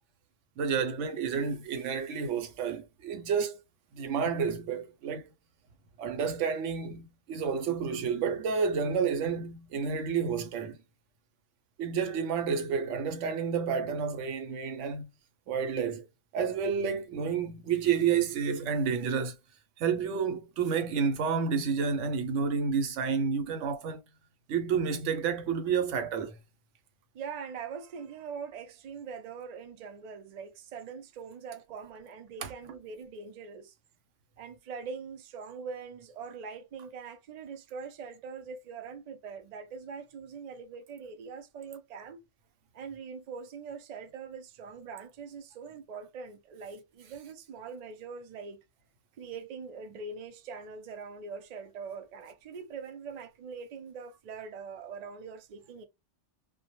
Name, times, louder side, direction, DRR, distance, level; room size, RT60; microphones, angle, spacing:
voice 1, 0.6-3.6 3.9-5.3 6.0-10.8 11.8-15.1 15.5-16.1 16.3-19.4 19.8-24.0 24.5-26.4 32.4-32.5, right 6 dB, 85° right, 0.9 m, -30 dB
voice 2, 27.1-33.7 34.4-42.2 42.7-48.6 49.2-55.9, right 5 dB, 65° right, 0.4 m, -43 dB
2.1 x 2.1 x 2.8 m
omnidirectional pair, 1.2 m